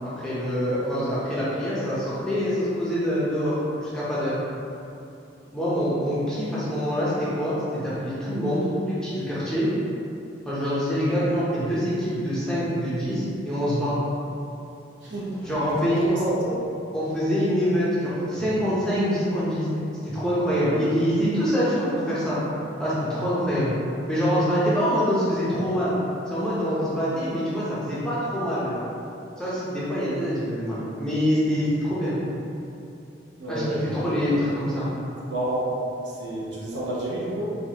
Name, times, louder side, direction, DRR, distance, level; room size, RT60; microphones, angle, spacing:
voice 1, 0.0-4.4 5.5-9.7 10.5-13.9 15.4-16.3 16.9-19.7 20.0-22.4 22.8-23.7 24.1-26.0 26.3-28.8 29.4-32.1 33.5-34.9, equal, 5° left, -10 dB, 0.7 m, -25 dB
voice 2, 15.0-16.6 33.4-34.4 35.3-35.7 36.0-37.6, right 1 dB, 65° right, -6 dB, 0.8 m, -30 dB
4.5 x 2.3 x 2.9 m, 2.7 s
head